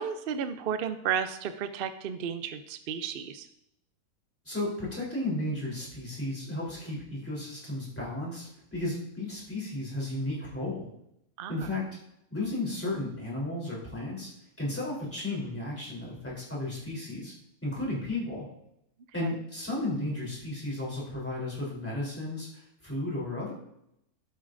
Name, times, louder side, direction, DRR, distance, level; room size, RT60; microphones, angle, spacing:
voice 1, 0.0-3.5 11.4-11.8 19.2-19.4, right 7 dB, 70° right, 10 dB, 0.5 m, -33 dB
voice 2, 4.5-10.9 11.5-11.8 12.3-14.3 14.6-17.3 17.6-18.4 19.1-23.5, left 2 dB, 10° left, -6 dB, 3.5 m, -34 dB
12.0 x 8.2 x 2.6 m, 0.79 s
omnidirectional pair, 1.6 m